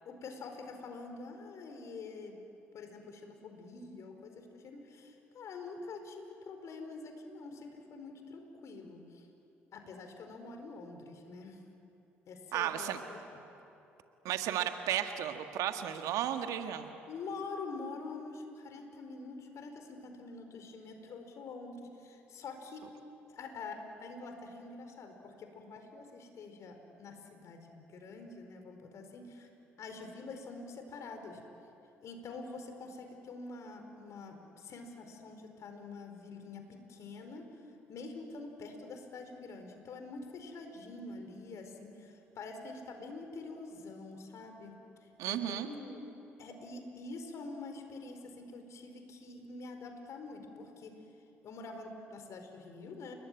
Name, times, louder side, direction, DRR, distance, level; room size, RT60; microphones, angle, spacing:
voice 1, 0.0-2.4 2.7-9.3 9.7-11.6 12.3-13.2 17.1-22.8 23.3-29.5 29.8-31.4 32.0-37.4 37.9-44.7 45.0-46.0 46.4-50.9 51.4-53.1, left 3 dB, 55° left, 6 dB, 4.6 m, -46 dB
voice 2, 12.5-13.0 14.2-16.9 45.2-45.7, right 11 dB, 65° right, 7 dB, 1.7 m, -34 dB
30.0 x 20.0 x 9.3 m, 2.8 s
hypercardioid pair, 50°, 6 cm